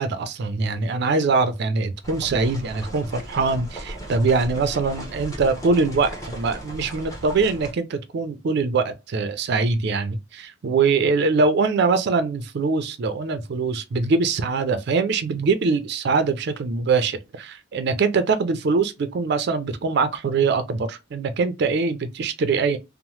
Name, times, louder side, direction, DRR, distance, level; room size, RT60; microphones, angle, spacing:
voice 1, 0.0-22.8, right 4 dB, 60° right, 0.4 m, -23 dB
Horses heading to start, 2.0-7.7, right 1 dB, 15° left, 0.8 m, -37 dB
2.8 x 2.0 x 3.0 m
head